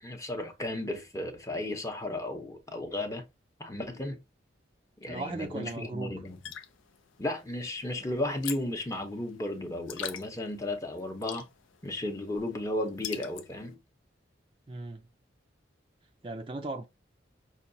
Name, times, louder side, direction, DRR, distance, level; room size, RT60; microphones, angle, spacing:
voice 1, 0.0-3.2 3.6-4.2 5.0-6.4 7.2-11.4 11.8-13.8, left 1 dB, 15° left, 0.7 m, -34 dB
voice 2, 5.1-6.1 14.7-15.0 16.2-16.8, right 2 dB, 25° right, 0.4 m, -36 dB
sound 1, 6.3-13.7, left 9 dB, 90° left, 0.5 m, -44 dB
5.7 x 2.2 x 2.6 m
head